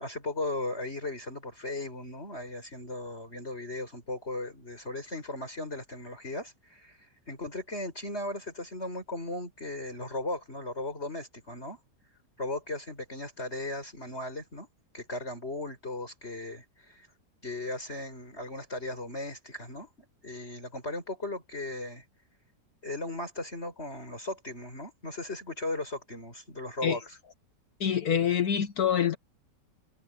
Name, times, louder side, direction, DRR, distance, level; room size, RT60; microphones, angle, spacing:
voice 1, 0.0-11.8 12.4-14.7 14.9-17.1 17.4-22.0 22.8-27.2, left 2 dB, 35° left, 6.0 m, -37 dB
voice 2, 27.8-29.2, left 8 dB, 65° left, 1.4 m, -26 dB
omnidirectional pair, 1.9 m